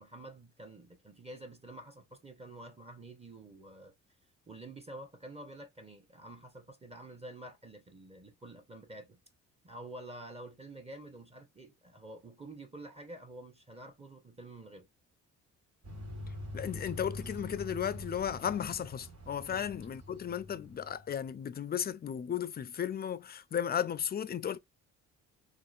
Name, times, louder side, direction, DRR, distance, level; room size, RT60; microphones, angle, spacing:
voice 1, 0.0-3.9 4.5-9.2 9.6-14.9 19.4-19.7, right 1 dB, 20° right, 0.8 m, -49 dB
sound 1, 15.8-21.1, left 1 dB, 65° right, 1.5 m, -45 dB
voice 2, 16.5-24.6, left 8 dB, 30° left, 0.4 m, -35 dB
3.7 x 2.5 x 2.4 m
cardioid pair, 90°, 30 cm